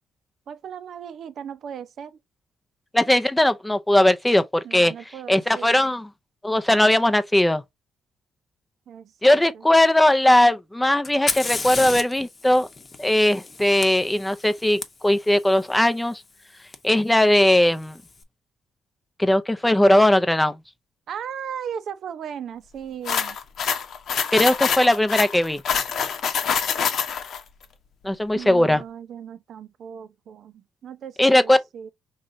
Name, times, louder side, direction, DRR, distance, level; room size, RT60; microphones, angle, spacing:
voice 1, 0.5-2.2 4.6-5.9 8.9-9.7 21.1-23.4 28.3-31.9, right 8 dB, 65° right, 0.7 m, -37 dB
voice 2, 2.9-4.9 5.3-6.1 6.4-7.6 9.2-12.7 13.0-16.2 16.8-18.0 19.2-20.6 24.3-25.6 28.0-28.8 31.2-31.6, left 1 dB, 10° left, 0.6 m, -19 dB
Fire, 11.0-14.8 16.7-16.8 17.7-18.1, left 3 dB, 30° left, 0.9 m, -32 dB
sound 1, 23.1-27.4, left 7 dB, 65° left, 0.9 m, -25 dB
4.9 x 3.2 x 2.6 m
cardioid pair, 90°, 0 cm